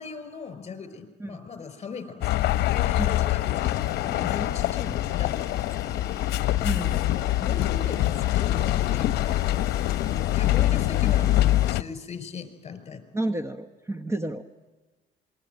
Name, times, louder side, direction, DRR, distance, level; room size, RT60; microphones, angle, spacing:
voice 1, 0.0-5.6 5.8-6.1 6.7-6.9 7.2-13.0, left 5 dB, 35° left, 10 dB, 5.5 m, -39 dB
sound 1, 2.2-11.8, left 15 dB, 75° left, 0.8 m, -24 dB
sound 2, 3.5-11.7, left 5 dB, 20° left, 1.5 m, -44 dB
voice 2, 6.6-7.0 11.1-11.3 13.1-14.5, right 1 dB, 15° right, 10 dB, 1.2 m, -31 dB
27.0 x 22.0 x 9.4 m, 1.2 s
cardioid pair, 110°, 17 cm